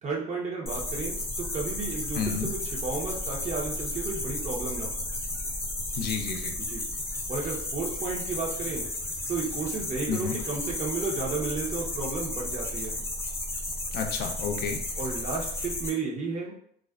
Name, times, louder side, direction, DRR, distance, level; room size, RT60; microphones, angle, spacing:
voice 1, 0.0-4.9 6.6-6.9 7.3-8.9 9.3-13.0 15.0-16.5, right 4 dB, 40° right, -2 dB, 0.8 m, -33 dB
sound 1, 0.7-15.9, left 1 dB, 15° left, 0.6 m, -33 dB
voice 2, 2.1-2.5 6.0-6.5 10.1-10.3 13.9-14.8, left 6 dB, 70° left, 4 dB, 0.4 m, -31 dB
2.4 x 2.3 x 2.3 m, 0.66 s
cardioid pair, 110°, 17 cm